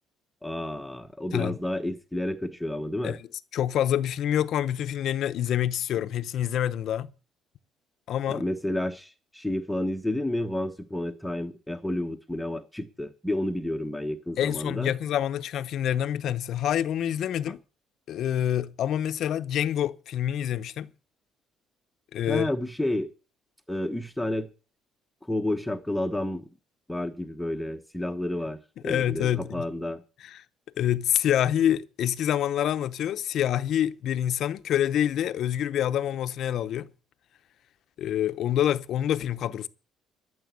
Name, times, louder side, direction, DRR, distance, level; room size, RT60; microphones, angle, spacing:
voice 1, 0.4-3.2 8.3-14.9 17.5-17.6 22.3-23.1 23.7-24.5 25.3-26.5 26.9-28.6 28.8-30.0, left 1 dB, 5° left, 1.1 m, -30 dB
voice 2, 3.5-7.1 8.1-8.4 14.4-17.6 18.1-20.9 22.1-22.5 28.8-29.7 30.2-30.4 30.8-36.9 38.0-39.7, left 10 dB, 60° left, 0.8 m, -26 dB
13.5 x 7.0 x 8.2 m
cardioid pair, 140°, 0 cm